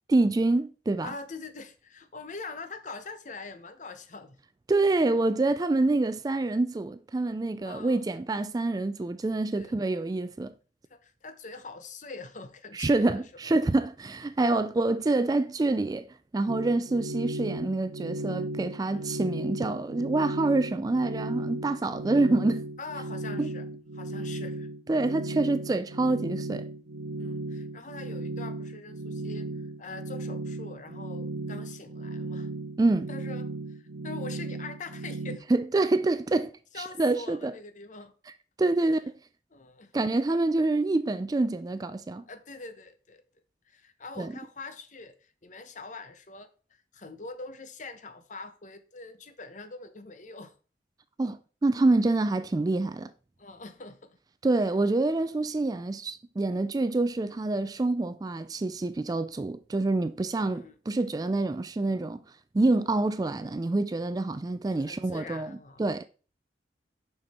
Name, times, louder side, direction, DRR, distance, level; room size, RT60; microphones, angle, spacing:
voice 1, 0.1-1.1 4.7-10.5 12.7-16.0 16.3-22.6 23.4-23.5 24.9-26.7 32.8-33.1 35.5-37.5 38.6-39.0 39.9-42.2 44.2-44.3 51.2-53.1 54.4-62.2 62.5-65.5 65.8-66.1, right 2 dB, 20° right, 0.3 m, -26 dB
voice 2, 1.0-4.4 7.6-8.0 9.5-9.8 10.9-13.7 18.9-19.2 22.8-23.7 23.9-24.7 27.2-29.5 29.8-32.5 33.1-35.4 36.7-38.1 38.8-39.0 39.5-39.9 42.3-43.2 43.7-46.5 46.9-50.6 53.4-54.2 60.4-60.8 64.7-65.8, left 3 dB, 45° left, 0.8 m, -43 dB
sound 1, 16.5-35.4, right 2 dB, 90° right, 0.7 m, -36 dB
6.4 x 6.0 x 4.2 m
head